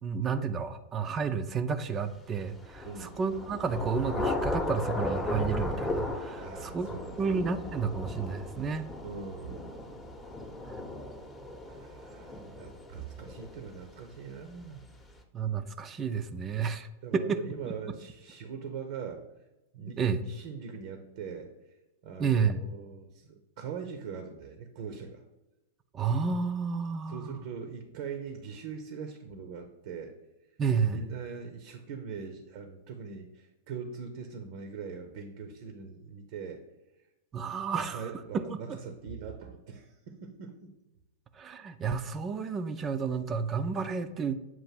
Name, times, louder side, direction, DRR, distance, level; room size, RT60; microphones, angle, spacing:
voice 1, 0.0-6.9 7.2-8.9 15.3-16.9 17.1-17.6 20.0-20.3 22.2-22.6 25.9-27.4 30.6-31.0 37.3-38.6 41.4-44.4, right 5 dB, 25° right, 10 dB, 0.5 m, -31 dB
Thunder / Rain, 2.6-14.2, left 2 dB, 15° left, 0.9 m, -36 dB
voice 2, 2.8-3.2 6.4-7.3 9.0-10.2 11.6-14.9 15.8-15.9 17.0-19.2 19.7-21.5 22.0-25.2 27.1-30.1 30.9-36.6 37.7-40.7, right 6 dB, 60° right, 6 dB, 0.8 m, -42 dB
7.5 x 2.6 x 5.8 m, 1.0 s
hypercardioid pair, 105°, 0 cm